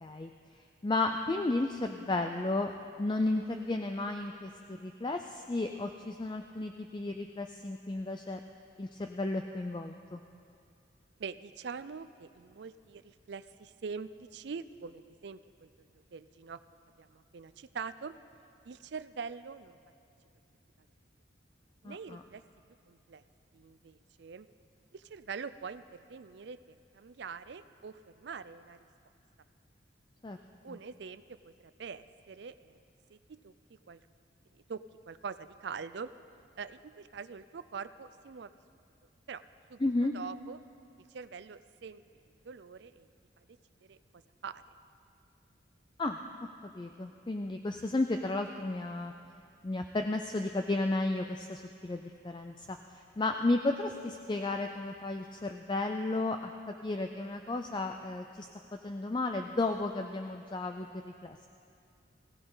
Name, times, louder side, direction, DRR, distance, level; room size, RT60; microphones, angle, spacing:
voice 1, 0.0-2.7 3.0-8.4 8.8-10.2 21.8-22.2 30.2-30.4 30.7-30.8 39.8-40.1 46.0-46.2 46.6-49.1 49.6-58.5 58.8-61.5, left 2 dB, 25° left, 5 dB, 0.4 m, -33 dB
voice 2, 11.2-15.7 16.1-16.6 17.0-18.1 18.7-19.8 21.8-22.4 22.9-23.2 23.5-24.5 24.9-28.8 30.6-31.5 31.8-32.8 33.1-33.5 33.9-34.0 34.5-34.8 35.1-36.1 36.6-38.5 39.3-39.4 39.7-39.8 40.1-40.6 41.1-42.0 42.4-43.1 43.9-44.0 44.4-44.6, right 5 dB, 60° right, 13 dB, 0.4 m, -44 dB
20.0 x 16.0 x 4.0 m, 2.4 s
head